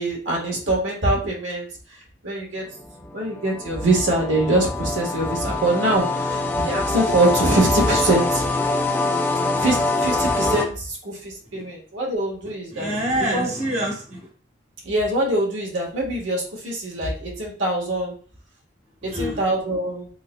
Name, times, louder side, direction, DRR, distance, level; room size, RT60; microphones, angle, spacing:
voice 1, 0.0-1.7 2.2-2.6 3.1-8.4 9.6-12.9 13.3-13.5 14.8-18.1 19.1-20.1, right 1 dB, 80° right, -2 dB, 1.4 m, -23 dB
sound 1, 2.7-10.6, left 3 dB, 10° left, 0.3 m, -24 dB
voice 2, 12.7-14.3 19.0-19.4, right 1 dB, 35° right, -2 dB, 1.1 m, -26 dB
3.8 x 3.7 x 2.2 m, 0.43 s
head